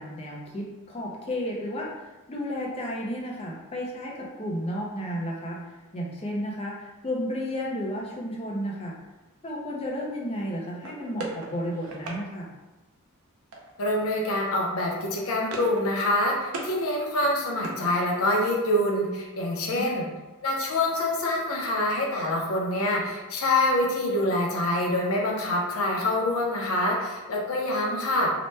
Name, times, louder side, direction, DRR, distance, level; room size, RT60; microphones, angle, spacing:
voice 1, 0.0-1.9 2.3-5.6 5.9-9.0 9.4-12.5 19.7-19.9, equal, 25° left, -2 dB, 0.5 m, -32 dB
sound 1, 10.8-12.2 13.5-13.9 14.2-14.5 14.8-15.8 16.1-16.7 17.1-18.4, right 2 dB, 75° right, 0.5 m, -39 dB
voice 2, 13.8-20.1 20.4-28.3, left 1 dB, 75° left, -1 dB, 0.6 m, -26 dB
2.8 x 2.1 x 3.1 m, 1.1 s
head